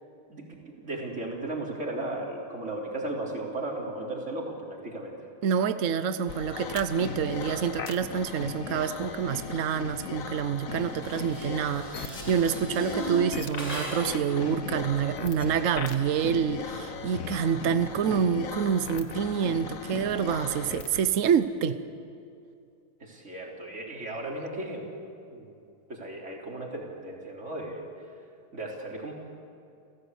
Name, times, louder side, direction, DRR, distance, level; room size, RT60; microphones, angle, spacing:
voice 1, 0.3-5.2 23.0-24.9 25.3-25.6 25.9-27.9 28.5-29.1, right 2 dB, 30° right, -1 dB, 3.9 m, -36 dB
voice 2, 5.4-21.8, right 7 dB, 80° right, 11 dB, 0.7 m, -27 dB
sound 1, 6.3-21.0, left 5 dB, 45° left, 1.3 m, -37 dB
Dishes pots and pans, 10.9-14.2, right 1 dB, 15° left, 8.0 m, -37 dB
29.5 x 15.5 x 8.2 m, 2.6 s
omnidirectional pair, 2.4 m